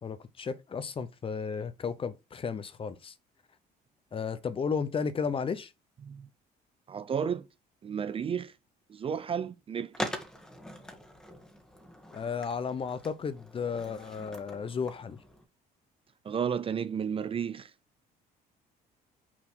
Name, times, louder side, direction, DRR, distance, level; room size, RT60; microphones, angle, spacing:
voice 1, 0.0-3.1 4.1-5.7 12.1-15.2, left 6 dB, 30° left, 0.7 m, -33 dB
voice 2, 6.9-7.5 7.8-8.5 8.9-10.1 16.2-17.7, right 7 dB, 35° right, 0.5 m, -32 dB
Skateboard, 9.9-15.4, equal, 5° left, 1.4 m, -43 dB
5.9 x 4.2 x 4.6 m
cardioid pair, 110°, 17 cm